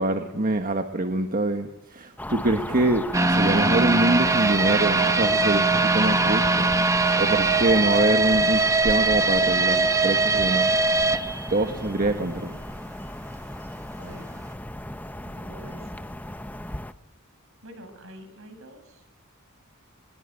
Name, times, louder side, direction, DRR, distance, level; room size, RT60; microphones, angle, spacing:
voice 1, 0.0-6.7 7.2-10.7 11.5-12.6, right 2 dB, 40° right, 6 dB, 1.5 m, -24 dB
sound 1, 2.2-16.9, left 1 dB, 10° left, 0.8 m, -35 dB
sound 2, 3.1-12.1 12.5-12.6 13.1-13.2, right 3 dB, 15° right, 1.1 m, -21 dB
voice 2, 15.2-16.0 17.6-19.1, equal, 70° right, 8 dB, 6.4 m, -46 dB
22.5 x 21.5 x 9.1 m, 0.92 s
head